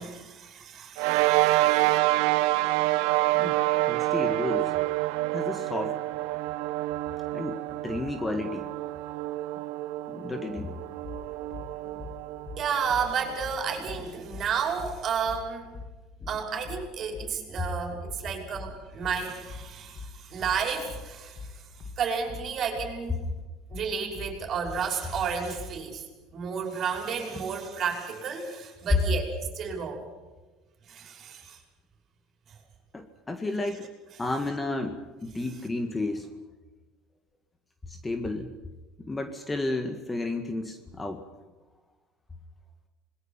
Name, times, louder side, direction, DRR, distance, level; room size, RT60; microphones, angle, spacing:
voice 1, 0.0-2.0 12.6-15.7 16.3-21.6 22.0-23.2 23.7-26.0 26.3-29.3 29.5-30.0 30.9-31.6, right 6 dB, 40° right, 2 dB, 5.8 m, -32 dB
sound 1, 1.0-13.7, right 18 dB, 75° right, 0.9 m, -27 dB
voice 2, 3.3-4.7 5.3-6.0 7.3-8.7 10.1-10.8 32.9-33.9 34.2-36.3 37.9-38.5 39.0-41.2, left 2 dB, 15° left, 7 dB, 1.8 m, -32 dB
sound 2, 11.0-25.8, left 4 dB, 40° left, 2.7 m, -42 dB
27.0 x 21.5 x 5.8 m, 1.2 s
supercardioid pair, 115°, 0 cm